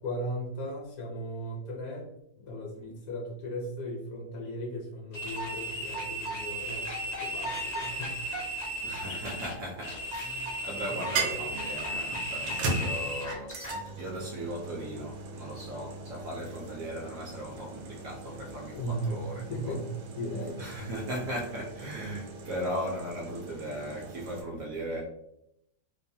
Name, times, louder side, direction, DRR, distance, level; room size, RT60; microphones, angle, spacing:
voice 1, 0.0-2.1 2.4-8.2 10.9-11.0 18.7-19.9 20.2-20.6, equal, 70° left, 0 dB, 1.0 m, -37 dB
sound 1, 5.1-13.8, right 1 dB, 50° left, 0.4 m, -35 dB
voice 2, 8.8-19.8 20.6-25.0, equal, 70° right, -1 dB, 0.8 m, -38 dB
sound 2, 9.6-10.1 11.1-24.4, right 3 dB, 90° right, 1.2 m, -39 dB
3.1 x 2.0 x 2.6 m, 0.79 s
omnidirectional pair, 1.8 m